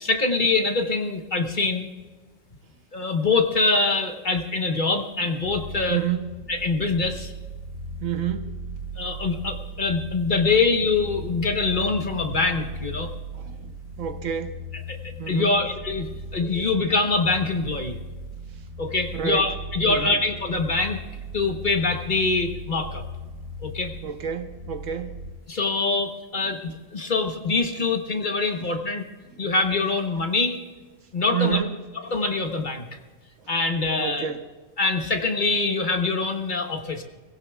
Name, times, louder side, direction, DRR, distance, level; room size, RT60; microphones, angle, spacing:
voice 1, 0.0-1.9 2.9-6.0 6.5-7.3 9.0-13.1 14.9-18.0 18.8-21.0 21.3-23.0 23.6-23.9 25.5-29.1 29.4-30.6 31.1-31.6 32.1-32.9 33.5-34.3 34.8-37.0, left 3 dB, 40° left, 5 dB, 1.1 m, -24 dB
sound 1, 5.4-25.3, equal, 45° right, 1.7 m, -37 dB
voice 2, 5.9-6.3 8.0-8.6 13.3-14.6 15.2-15.6 16.8-16.9 18.5-18.7 19.1-19.6 19.9-20.2 24.0-25.2 26.4-26.6 27.8-28.0 29.3-29.4 31.3-31.8 33.4-33.5 34.0-34.5, right 9 dB, 80° right, 7 dB, 1.3 m, -30 dB
24.0 x 16.5 x 2.3 m, 1.3 s
omnidirectional pair, 1.3 m